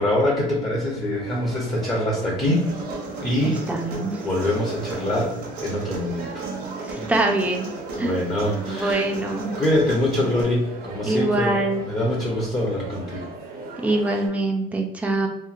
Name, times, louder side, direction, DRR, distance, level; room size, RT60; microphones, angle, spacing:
voice 1, 0.0-2.7 3.2-3.6 4.2-5.3 5.6-6.3 8.0-9.0 9.6-13.3, left 1 dB, 25° left, -4 dB, 0.7 m, -24 dB
sound 1, 1.1-14.3, right 3 dB, 60° right, 0.7 m, -38 dB
Human voice, 2.4-10.4, right 3 dB, 75° right, 1.0 m, -35 dB
voice 2, 3.4-4.2 6.8-7.7 8.0-8.1 8.7-9.5 11.0-11.8 13.8-15.3, right 2 dB, 10° right, 1 dB, 0.5 m, -24 dB
3.0 x 2.5 x 2.4 m, 0.85 s
cardioid pair, 110°, 17 cm